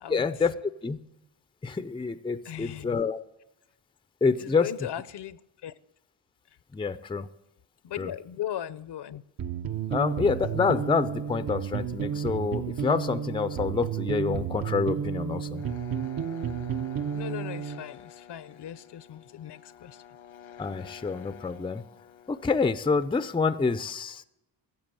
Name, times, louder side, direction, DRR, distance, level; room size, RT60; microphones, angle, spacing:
voice 1, 0.1-0.5 0.8-1.0 1.6-3.2 4.2-4.7 6.7-7.3 8.0-8.1 9.9-15.6 20.6-21.8 22.3-24.2, left 4 dB, 10° left, 0.5 m, -27 dB
voice 2, 2.4-3.0 4.4-5.7 7.8-9.2 17.1-20.0, left 11 dB, 60° left, 0.7 m, -38 dB
sound 1, 9.4-17.8, right 8 dB, 45° right, 0.8 m, -32 dB
sound 2, 15.5-23.3, left 9 dB, 90° left, 1.4 m, -49 dB
14.5 x 7.5 x 7.5 m
cardioid pair, 105°, 47 cm